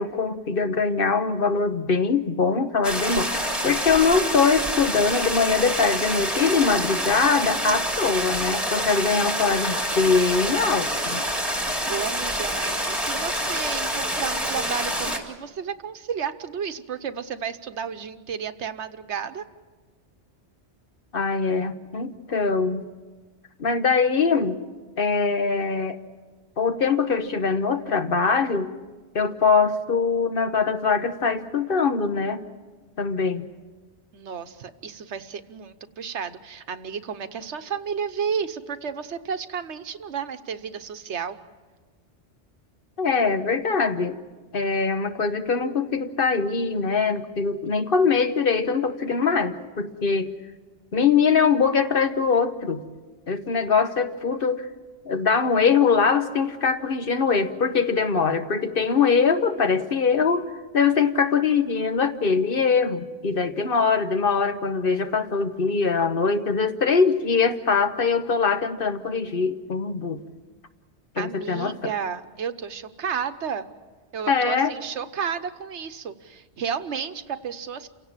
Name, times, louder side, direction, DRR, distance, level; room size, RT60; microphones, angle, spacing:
voice 1, 0.0-11.2 21.1-22.8 23.6-24.6 25.0-26.0 26.6-28.7 29.1-32.4 33.0-33.5 43.0-44.2 44.5-50.3 50.9-52.8 53.3-54.7 55.0-70.2 71.1-71.9 74.3-74.7, left 5 dB, 55° left, 8 dB, 1.2 m, -22 dB
sound 1, 2.8-15.2, equal, ahead, 2.3 m, -27 dB
voice 2, 11.9-19.4 34.1-41.4 71.2-73.7 74.1-77.9, right 7 dB, 85° right, 11 dB, 1.3 m, -32 dB
28.5 x 17.0 x 7.3 m, 1.3 s
omnidirectional pair, 1.1 m